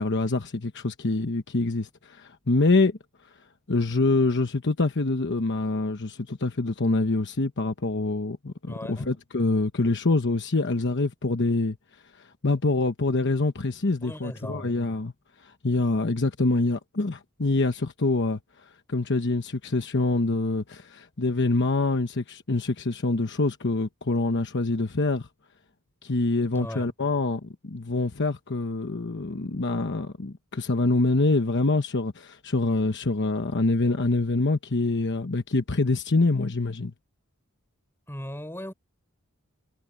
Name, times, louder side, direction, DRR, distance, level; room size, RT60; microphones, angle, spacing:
voice 1, 0.0-3.0 3.7-11.8 12.2-15.1 15.4-25.3 26.0-36.9, left 2 dB, 55° left, 1.1 m, -25 dB
voice 2, 8.7-9.2 14.0-14.8 26.5-26.9 38.1-38.7, left 1 dB, 10° left, 5.7 m, -37 dB
head